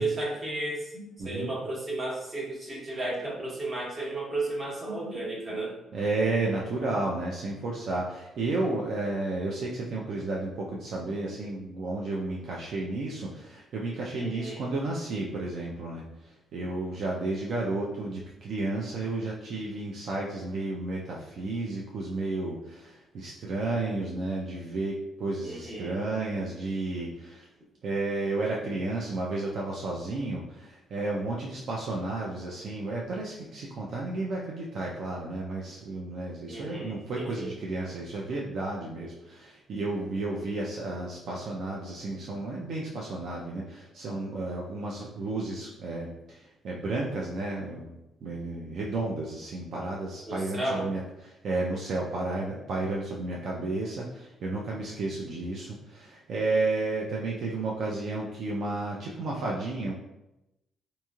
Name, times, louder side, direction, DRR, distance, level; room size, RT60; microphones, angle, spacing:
voice 1, 0.0-5.7 14.2-14.6 25.4-26.0 36.5-37.5 50.3-50.9, right 2 dB, 35° right, -5 dB, 1.1 m, -33 dB
voice 2, 1.2-1.5 5.9-27.5 27.8-47.9 48.2-59.9, right 2 dB, 65° right, -3 dB, 0.4 m, -32 dB
2.9 x 2.7 x 2.3 m, 0.92 s
cardioid pair, 90°, 0 cm